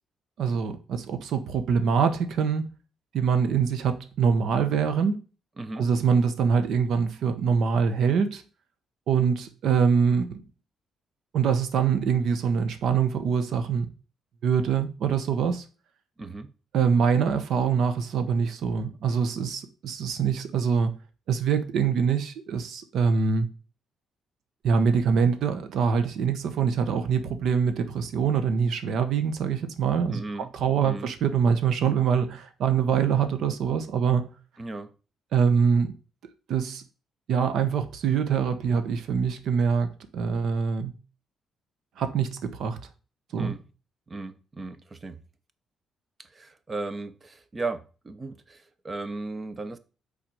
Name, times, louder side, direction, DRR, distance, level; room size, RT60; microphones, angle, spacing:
voice 1, 0.4-2.6 3.1-5.2 5.8-8.4 9.1-10.4 11.3-13.9 14.4-15.6 16.7-21.0 21.3-23.5 24.6-30.2 30.5-34.2 35.3-35.9 36.5-36.8 37.3-40.9 42.0-42.8 43.3-43.5, right 6 dB, 75° right, 0.9 m, -24 dB
voice 2, 5.6-5.9 16.2-16.5 30.1-30.5 30.8-31.1 34.6-34.9 43.3-43.6 44.1-45.2 46.2-49.8, right 3 dB, 30° right, 0.8 m, -36 dB
6.0 x 4.0 x 6.3 m
cardioid pair, 90°, 0 cm